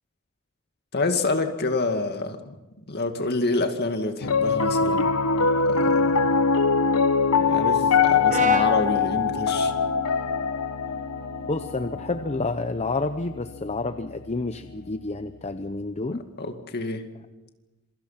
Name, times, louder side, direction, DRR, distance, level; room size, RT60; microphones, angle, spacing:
voice 1, 0.9-2.5 2.9-5.1 5.7-6.2 7.5-9.7 16.1-17.0, left 3 dB, 50° left, 6 dB, 2.2 m, -27 dB
Piano, 4.2-14.6, left 5 dB, 85° left, 0.9 m, -23 dB
Brass instrument, 8.3-12.5, right 3 dB, 35° right, 1.0 m, -34 dB
voice 2, 11.5-16.2, left 3 dB, 30° left, 9 dB, 0.7 m, -29 dB
27.0 x 23.5 x 5.8 m, 1.1 s
head